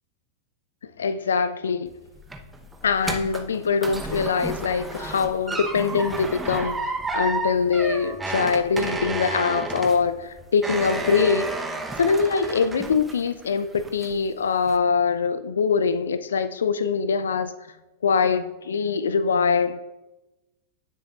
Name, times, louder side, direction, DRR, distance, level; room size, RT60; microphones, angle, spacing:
voice 1, 1.0-1.9 2.8-11.5 12.0-17.5 18.0-19.8, left 5 dB, 70° left, 0.5 m, -23 dB
sound 1, 1.9-13.4 13.8-14.3 14.7-14.8, right 2 dB, 10° right, 0.9 m, -31 dB
18.0 x 6.7 x 2.4 m
figure-of-eight pair, 90°, 0 cm